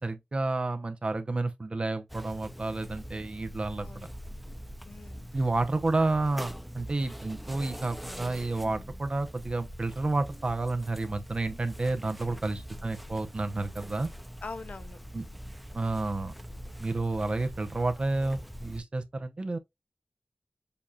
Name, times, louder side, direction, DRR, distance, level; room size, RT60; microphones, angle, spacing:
voice 1, 0.0-4.1 5.3-14.1 15.1-15.2 15.7-16.4 16.8-19.6, right 2 dB, 45° right, 0.7 m, -30 dB
sound 1, 2.1-18.8, equal, ahead, 0.5 m, -43 dB
voice 2, 3.8-4.1 4.9-5.4 12.2-12.5 14.4-15.0, left 4 dB, 70° left, 0.5 m, -44 dB
6.9 x 2.7 x 2.3 m
wide cardioid pair, 80°, 2 cm